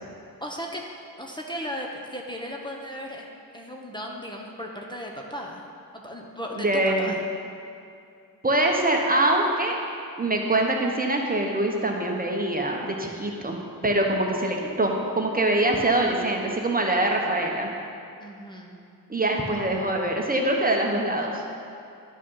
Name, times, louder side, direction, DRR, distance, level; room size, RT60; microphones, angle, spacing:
voice 1, 0.4-0.8 1.2-3.3 3.5-5.6 5.9-7.2 18.2-18.8, equal, 15° left, -1 dB, 1.1 m, -36 dB
voice 2, 6.6-7.1 8.4-9.8 10.2-13.6 13.8-17.7 19.1-21.4, right 1 dB, 25° right, 0 dB, 1.1 m, -24 dB
11.0 x 6.2 x 5.6 m, 2.5 s
wide cardioid pair, 90°, 36 cm